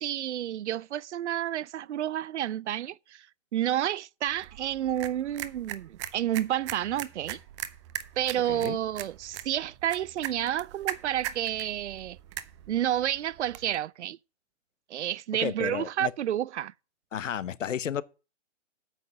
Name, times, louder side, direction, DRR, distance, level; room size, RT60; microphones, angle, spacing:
voice 1, 0.0-3.3 3.5-7.4 8.2-12.2 12.7-14.2 14.9-16.7, right 11 dB, 70° right, 0.5 m, -30 dB
sound 1, 4.3-13.8, right 12 dB, 25° right, 0.6 m, -41 dB
voice 2, 15.4-16.1 17.1-18.0, left 9 dB, 85° left, 0.8 m, -32 dB
9.0 x 5.8 x 6.3 m
hypercardioid pair, 140°, 37 cm